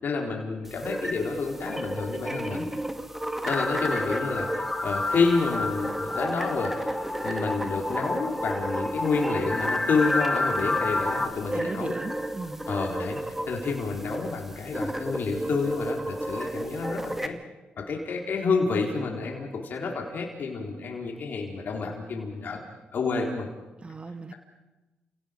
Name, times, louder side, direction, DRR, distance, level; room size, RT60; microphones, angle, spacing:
voice 1, 0.0-2.7 3.5-7.0 7.2-11.9 12.7-17.3 17.8-22.6 22.9-23.5, left 4 dB, 65° left, 0 dB, 4.0 m, -29 dB
sound 1, 0.6-17.3, right 1 dB, 10° right, 2.1 m, -33 dB
sound 2, 3.5-11.3, left 2 dB, 25° left, 3.2 m, -30 dB
voice 2, 11.5-12.6 23.8-24.3, right 3 dB, 30° right, 8 dB, 1.6 m, -37 dB
30.0 x 17.5 x 5.2 m, 1.1 s
cardioid pair, 65°, 3 cm